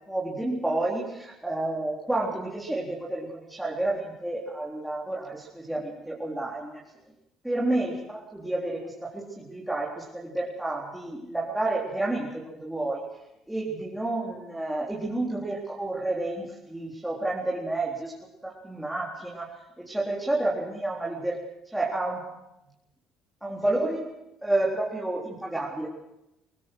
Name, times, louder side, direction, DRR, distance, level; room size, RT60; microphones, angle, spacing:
voice 1, 0.1-6.7 7.4-13.1 13.5-18.1 18.4-21.4 21.6-22.3 23.4-24.1 24.4-25.9, right 2 dB, 5° right, -4 dB, 4.1 m, -30 dB
24.5 x 19.5 x 6.3 m, 0.91 s
cardioid pair, 100°, 0 cm